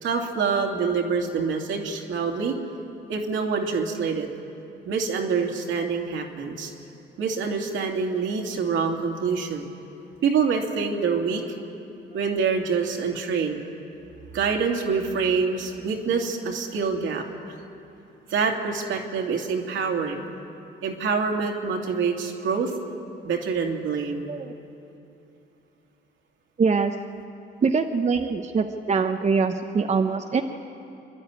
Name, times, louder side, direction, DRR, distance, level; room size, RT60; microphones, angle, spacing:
voice 1, 0.0-2.6 3.1-4.3 4.9-6.7 7.2-9.7 10.2-11.4 12.1-13.6 14.3-17.2 18.3-20.3 20.8-22.7 23.2-24.3, right 5 dB, 75° right, 1 dB, 2.6 m, -26 dB
voice 2, 26.6-26.9 27.6-30.4, right 5 dB, 35° right, 5 dB, 0.9 m, -23 dB
28.0 x 11.5 x 9.7 m, 2.8 s
cardioid pair, 90°, 20 cm